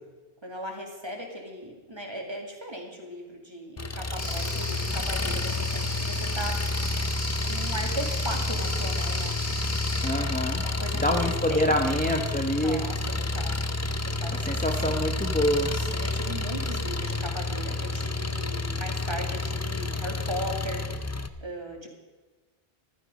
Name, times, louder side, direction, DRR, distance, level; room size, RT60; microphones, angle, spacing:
voice 1, 0.4-6.8 7.5-9.4 10.6-11.7 12.6-13.0 13.3-13.6 14.2-14.5 14.8-14.9 15.7-20.8 21.4-21.9, equal, 25° right, 1 dB, 2.3 m, -37 dB
Engine, 3.8-21.3, left 2 dB, 25° left, 0.4 m, -30 dB
sound 1, 4.2-10.1, left 1 dB, 80° left, 3.4 m, -36 dB
voice 2, 10.0-10.6 10.9-12.8 14.3-15.7, equal, 10° left, 1 dB, 0.9 m, -26 dB
15.0 x 12.5 x 5.2 m, 1.3 s
omnidirectional pair, 1.1 m